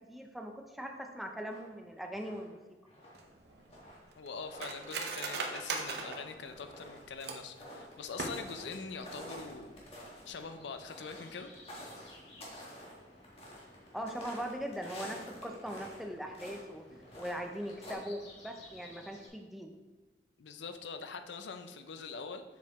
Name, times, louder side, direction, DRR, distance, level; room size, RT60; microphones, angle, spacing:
voice 1, 0.1-2.6 13.9-16.8 17.2-19.7, equal, ahead, 2 dB, 0.5 m, -40 dB
sound 1, 1.5-2.5 2.9-8.8 9.0-16.0 16.3-16.6 17.0-17.9, equal, 35° left, 1.5 m, -49 dB
Cutlery silverware, 3.1-7.6 8.1-8.8 9.1-9.2 9.5-9.9 10.2-10.4, right 4 dB, 65° right, 0.7 m, -40 dB
voice 2, 4.2-9.8 10.3-11.5 20.4-22.4, left 5 dB, 80° left, 8 dB, 0.5 m, -43 dB
sound 2, 8.2-19.3, left 1 dB, 65° left, 2.1 m, -57 dB
7.2 x 4.8 x 3.5 m, 1.2 s
head